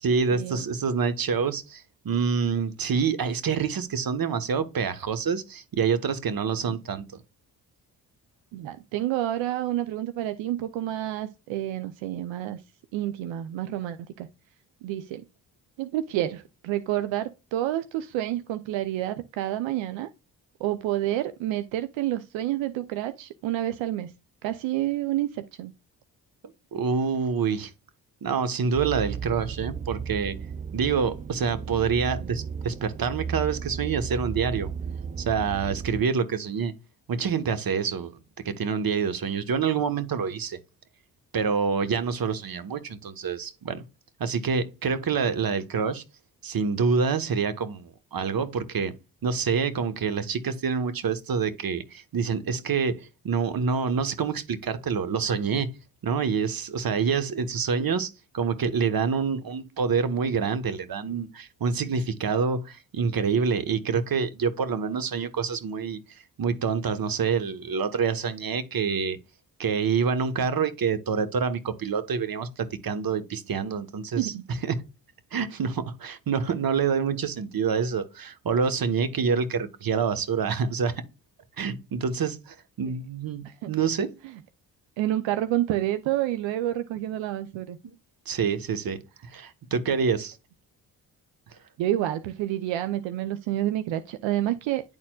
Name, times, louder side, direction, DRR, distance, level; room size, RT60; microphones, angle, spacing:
voice 1, 0.0-7.0 26.7-27.7 28.2-30.4 30.7-34.7 35.2-36.7 37.1-38.1 38.4-40.6 41.3-43.8 44.2-46.0 46.4-48.9 49.2-55.7 56.0-58.1 58.3-66.0 66.4-69.2 69.6-74.3 74.6-74.7 75.3-80.9 81.6-84.1 87.8-87.9 88.3-89.0 89.3-90.4, right 6 dB, 50° right, 1.3 m, -27 dB
voice 2, 8.5-12.6 12.9-14.3 14.8-15.3 15.8-20.1 20.6-24.1 24.4-25.7 57.7-57.8 74.2-74.4 82.9-83.0 83.4-83.7 84.2-84.3 85.0-87.8 88.3-88.4 91.8-94.8, right 13 dB, 80° right, 0.6 m, -29 dB
sound 1, 28.7-36.0, right 6 dB, 20° right, 0.3 m, -34 dB
10.5 x 4.3 x 2.3 m
supercardioid pair, 50°, 45 cm